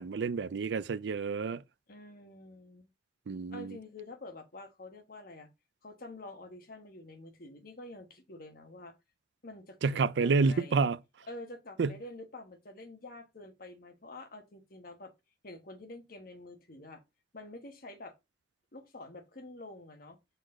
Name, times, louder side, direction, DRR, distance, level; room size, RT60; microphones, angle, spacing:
voice 1, 0.0-1.6 3.3-3.7 9.8-11.0 11.8-11.9, right 4 dB, 85° right, 0.5 m, -29 dB
voice 2, 1.9-2.9 3.5-5.5 5.8-8.9 9.4-10.9 11.3-15.1 15.4-17.0 17.3-18.1 18.7-20.2, left 2 dB, 55° left, 1.3 m, -48 dB
6.4 x 4.1 x 4.2 m
head